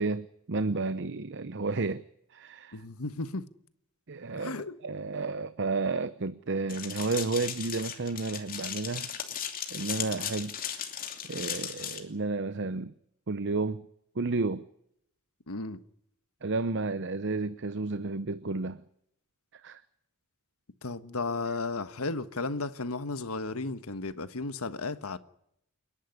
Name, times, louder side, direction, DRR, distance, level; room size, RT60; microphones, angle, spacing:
voice 1, 0.0-2.0 2.3-2.8 4.1-4.5 4.8-9.1 9.7-10.5 11.3-12.9 13.3-13.9 14.2-14.7 16.4-18.8 19.5-19.8, right 3 dB, 55° right, 0.8 m, -31 dB
voice 2, 2.7-3.5 4.4-4.8 15.5-15.8 20.8-25.2, left 3 dB, 75° left, 1.4 m, -34 dB
sound 1, 6.7-12.0, left 8 dB, 40° left, 2.8 m, -36 dB
29.0 x 11.5 x 9.8 m
head